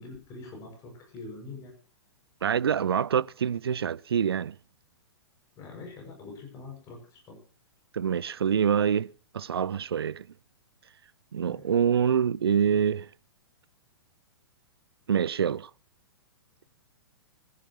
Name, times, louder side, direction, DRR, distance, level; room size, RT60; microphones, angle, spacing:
voice 1, 0.0-1.7 5.5-7.4 11.4-11.7, left 3 dB, 25° left, 6.7 m, -44 dB
voice 2, 2.4-4.6 7.9-10.3 11.3-13.1 15.1-15.7, right 8 dB, 65° right, 0.6 m, -26 dB
24.5 x 11.0 x 3.1 m
figure-of-eight pair, 110°, 14 cm